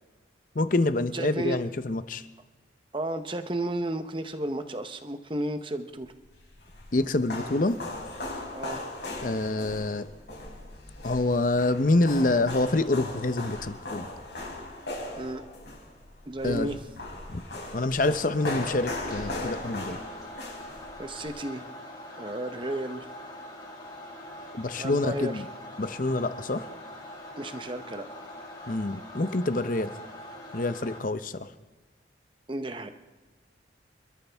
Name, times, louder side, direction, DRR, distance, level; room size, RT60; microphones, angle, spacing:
voice 1, 0.5-2.2 6.9-7.8 9.2-10.1 11.0-14.1 16.4-16.7 17.3-17.4 17.7-20.0 24.5-25.5 25.8-26.7 28.7-29.9 30.5-31.5, left 2 dB, 45° left, 12 dB, 0.7 m, -26 dB
voice 2, 1.1-1.6 2.9-6.1 8.5-8.8 15.2-15.4 16.3-16.8 21.0-21.6 22.2-23.1 24.8-25.4 27.4-28.1 32.5-32.9, right 1 dB, 25° right, 8 dB, 0.8 m, -33 dB
sound 1, 6.2-21.3, left 2 dB, 65° left, 5.0 m, -38 dB
sound 2, 18.4-31.0, left 1 dB, 20° left, 2.6 m, -43 dB
28.0 x 13.0 x 3.5 m, 1.3 s
head